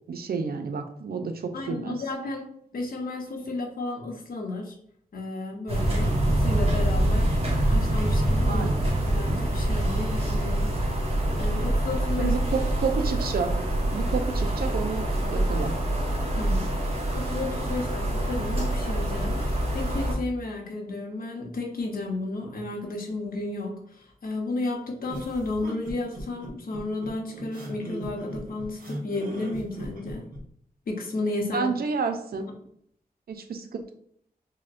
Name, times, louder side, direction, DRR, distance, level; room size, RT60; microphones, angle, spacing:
voice 1, 0.1-2.1 8.5-8.9 12.2-13.6 13.9-15.7 31.5-32.4 33.3-33.9, right 5 dB, 90° right, 6 dB, 0.5 m, -30 dB
voice 2, 1.5-2.4 2.7-4.8 5.1-7.4 7.7-8.7 9.1-10.7 11.4-12.3 16.3-16.7 17.1-30.2 30.9-31.7, left 2 dB, 75° left, 1 dB, 0.9 m, -33 dB
sound 1, 5.7-20.2, right 1 dB, 40° right, 1.1 m, -25 dB
sound 2, 25.1-30.4, right 1 dB, 65° right, 1.2 m, -39 dB
5.7 x 2.1 x 2.5 m, 0.68 s
wide cardioid pair, 115°, 15 cm